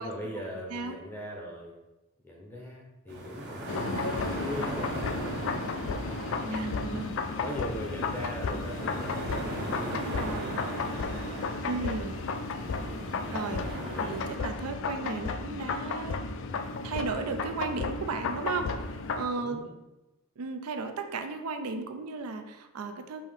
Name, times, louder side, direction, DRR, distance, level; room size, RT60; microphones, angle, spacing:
voice 1, 0.0-1.8 2.2-3.9 4.4-5.5 6.0-6.6 7.4-10.8 11.1-11.8 13.9-14.2 19.4-19.7, equal, 10° left, -2 dB, 0.6 m, -41 dB
sound 1, 3.1-14.4, right 1 dB, 50° right, 0.7 m, -38 dB
sound 2, 3.7-19.3, left 4 dB, 60° left, 0.3 m, -34 dB
voice 2, 6.4-7.2 9.9-10.6 11.6-12.2 13.3-16.2 16.8-18.7 19.2-19.7 20.4-23.3, right 4 dB, 85° right, 6 dB, 0.5 m, -35 dB
5.4 x 2.7 x 3.3 m, 1.0 s
head